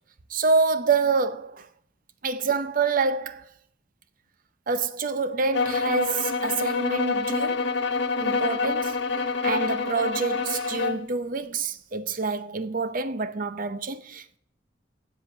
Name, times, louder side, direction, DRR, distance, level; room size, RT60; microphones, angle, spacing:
voice 1, 0.3-1.7 2.2-3.4 4.7-7.7 8.2-9.0 9.4-14.4, right 4 dB, 50° right, 0.7 m, -27 dB
sound 1, 5.5-11.1, left 4 dB, 70° left, 1.1 m, -27 dB
8.0 x 7.7 x 8.1 m
head